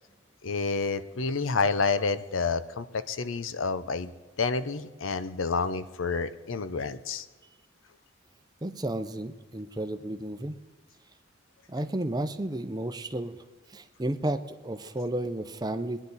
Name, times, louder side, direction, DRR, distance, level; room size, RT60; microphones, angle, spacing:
voice 1, 0.4-4.1 4.4-7.3, left 4 dB, 90° left, 13 dB, 0.7 m, -29 dB
voice 2, 8.6-10.5 11.7-13.4 13.7-16.0, right 1 dB, 20° right, 9 dB, 0.6 m, -32 dB
21.0 x 10.0 x 4.1 m, 1.3 s
head